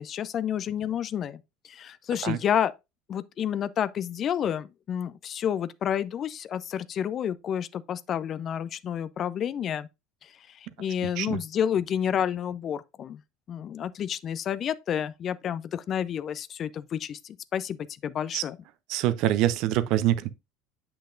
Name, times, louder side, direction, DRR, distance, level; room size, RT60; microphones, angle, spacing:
voice 1, 0.0-2.7 3.1-9.9 10.2-13.2 13.5-18.6, left 9 dB, 40° left, 0.5 m, -30 dB
voice 2, 11.0-11.4 18.3-18.4 18.9-20.3, right 13 dB, 55° right, 0.6 m, -25 dB
8.3 x 5.8 x 2.5 m
figure-of-eight pair, 70°, 0 cm